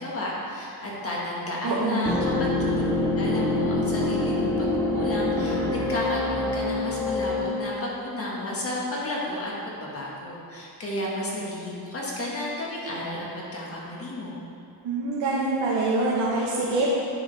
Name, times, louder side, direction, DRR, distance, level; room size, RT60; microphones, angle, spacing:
voice 1, 0.0-2.8 3.1-4.7 4.9-14.4, left 1 dB, 30° left, -4 dB, 1.5 m, -32 dB
voice 2, 1.6-2.2 14.8-16.9, right 2 dB, 80° right, -6 dB, 1.2 m, -25 dB
sound 1, 2.0-7.8, left 2 dB, 5° left, 0.6 m, -25 dB
9.3 x 4.8 x 3.4 m, 2.5 s
cardioid pair, 125°, 43 cm